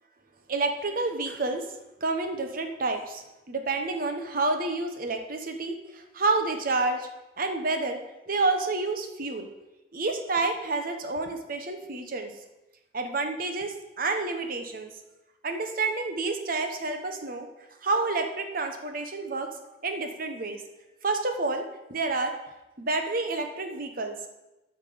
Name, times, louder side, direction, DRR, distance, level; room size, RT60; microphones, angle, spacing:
voice 1, 0.5-1.7 2.0-7.1 7.4-8.0 8.3-9.5 9.9-12.3 12.9-14.9 15.4-17.5 17.8-19.5 19.8-20.6 21.0-21.6 21.9-22.3 22.8-24.3, right 3 dB, 55° right, 5 dB, 1.1 m, -29 dB
12.0 x 5.9 x 5.1 m, 1.0 s
head